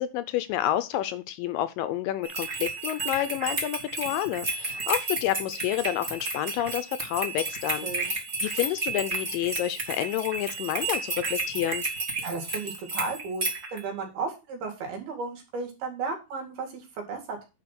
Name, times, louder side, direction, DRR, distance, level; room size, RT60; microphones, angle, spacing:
voice 1, 0.0-11.9, left 13 dB, 80° left, 12 dB, 2.1 m, -29 dB
sound 1, 2.2-13.8, right 2 dB, 35° right, 1.1 m, -32 dB
voice 2, 7.8-8.1 12.2-13.5 13.7-17.5, right 4 dB, 90° right, 2 dB, 4.3 m, -34 dB
9.8 x 4.4 x 5.9 m, 0.27 s
omnidirectional pair, 4.3 m